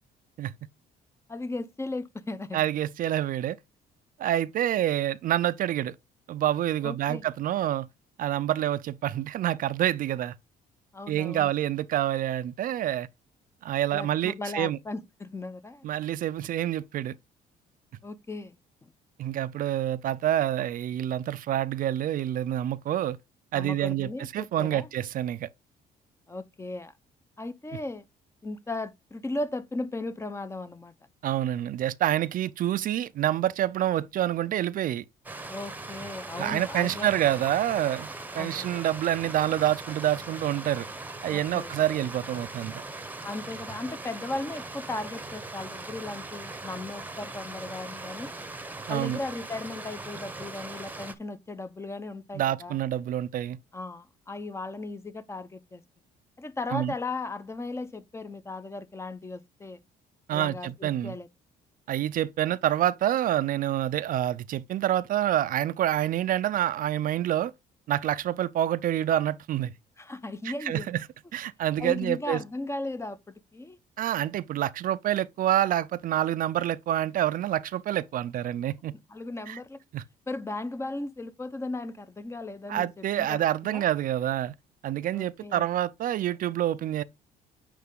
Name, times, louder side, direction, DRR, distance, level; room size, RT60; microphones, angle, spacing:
voice 1, 1.3-2.6 6.8-7.3 10.9-11.5 13.9-15.9 18.0-18.6 23.5-24.9 26.3-26.9 27.4-28.0 28.4-30.9 35.5-37.1 38.4-38.8 41.3-41.7 43.2-48.3 48.9-52.8 53.7-55.8 56.4-59.8 60.3-61.3 70.0-70.9 71.8-73.8 79.1-79.8 80.3-83.8 85.1-85.7, left 2 dB, 15° left, 0.7 m, -36 dB
voice 2, 2.5-3.6 4.2-5.9 6.3-7.9 8.2-10.3 11.1-13.1 13.6-14.8 15.8-17.1 19.2-23.2 23.5-25.5 31.2-35.0 36.4-38.1 38.3-40.9 41.2-42.8 48.9-49.2 52.3-53.6 56.7-56.9 60.3-61.2 61.9-67.5 67.9-69.7 70.4-71.0 71.3-72.4 74.0-78.9 79.5-79.6 79.9-80.0 82.7-84.5 84.8-87.0, right 12 dB, 55° right, 0.5 m, -27 dB
Stream, 35.2-51.1, right 2 dB, 10° right, 0.9 m, -40 dB
9.4 x 3.3 x 3.7 m
cardioid pair, 110°, 17 cm